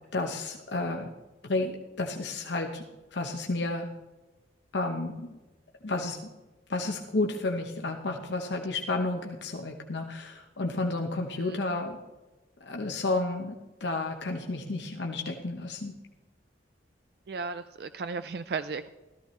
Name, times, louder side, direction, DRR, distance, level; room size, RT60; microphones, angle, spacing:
voice 1, 0.1-1.1 1.4-2.8 3.1-3.9 4.7-5.4 5.8-6.3 6.7-12.0 12.6-13.5 13.8-15.9, left 2 dB, 75° left, 2 dB, 1.0 m, -31 dB
voice 2, 17.3-18.9, right 4 dB, 60° right, 11 dB, 0.4 m, -35 dB
14.0 x 14.0 x 3.2 m, 1.1 s
head